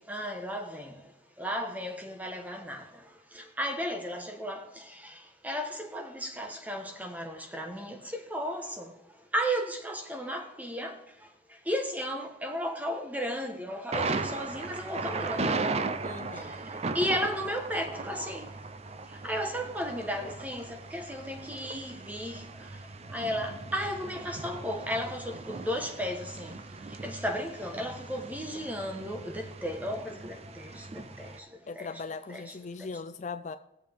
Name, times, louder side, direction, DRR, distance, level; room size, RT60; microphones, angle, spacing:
voice 1, 0.0-15.9 16.3-32.0 32.3-33.0, equal, 10° right, 1.2 m, -35 dB
Thunder, 13.9-31.4, right 3 dB, 35° right, 0.5 m, -37 dB
voice 2, 16.0-16.5 31.7-33.6, left 4 dB, 40° left, 0.4 m, -39 dB
17.5 x 7.5 x 3.5 m
head